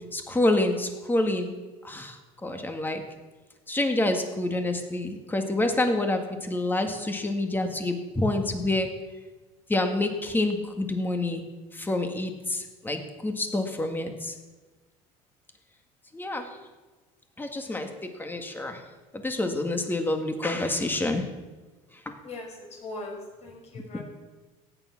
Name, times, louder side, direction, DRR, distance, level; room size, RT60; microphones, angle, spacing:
voice 1, 0.1-1.5 1.8-2.2 2.4-3.0 3.7-8.9 9.7-11.4 11.7-14.3 16.1-16.5 17.4-18.8 19.1-21.3 23.9-24.0, left 2 dB, 10° left, 5 dB, 1.9 m, -27 dB
voice 2, 22.8-24.0, left 2 dB, 40° left, -1 dB, 5.9 m, -39 dB
16.0 x 10.0 x 6.0 m, 1.3 s
cardioid pair, 120°, 16 cm